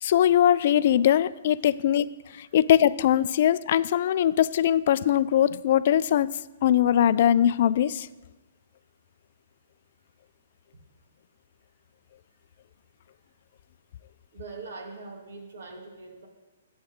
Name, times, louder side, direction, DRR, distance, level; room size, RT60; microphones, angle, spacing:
voice 1, 0.0-2.1 2.4-8.1, left 10 dB, 50° left, 16 dB, 0.3 m, -21 dB
voice 2, 14.3-16.3, right 3 dB, 70° right, 2 dB, 2.6 m, -42 dB
16.0 x 8.8 x 3.6 m, 1.1 s
hypercardioid pair, 160°, 0 cm